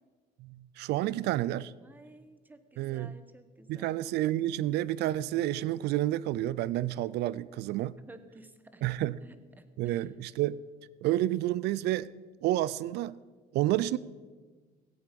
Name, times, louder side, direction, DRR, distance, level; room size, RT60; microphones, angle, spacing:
voice 1, 0.4-1.7 2.8-3.1 3.7-7.9 8.8-9.2 9.8-10.6 11.0-12.1 12.4-13.2 13.5-14.0, right 14 dB, 80° right, 20 dB, 0.4 m, -30 dB
voice 2, 1.8-4.1 8.0-8.8 9.2-10.1, right 2 dB, 10° right, 10 dB, 1.0 m, -54 dB
16.5 x 8.5 x 5.3 m, 1.4 s
cardioid pair, 110°, 17 cm